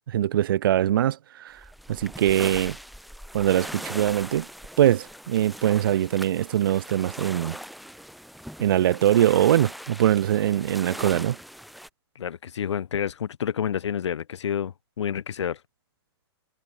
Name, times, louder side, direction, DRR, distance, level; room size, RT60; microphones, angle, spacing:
voice 1, 0.1-1.6 1.9-2.8 3.3-4.5 4.8-7.6 8.6-11.4, right 12 dB, 50° right, 0.4 m, -22 dB
sound 1, 1.6-11.9, equal, ahead, 4.7 m, -40 dB
voice 2, 12.1-15.6, left 8 dB, 90° left, 1.0 m, -29 dB
hypercardioid pair, 170°, 14 cm